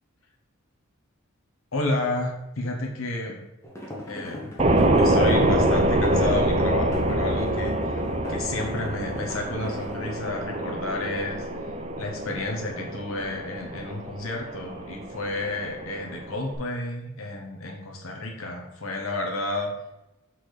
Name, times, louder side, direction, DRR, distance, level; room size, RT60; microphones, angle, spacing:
voice 1, 1.7-3.5 4.1-4.5 5.0-8.0 8.3-11.5 12.0-19.7, left 2 dB, 85° left, 1 dB, 1.2 m, -31 dB
sound 1, 3.6-6.4 6.9-10.0, left 1 dB, 15° left, 1.4 m, -38 dB
sound 2, 4.6-16.6, right 1 dB, 30° right, 0.7 m, -25 dB
6.2 x 4.3 x 4.9 m, 0.94 s
head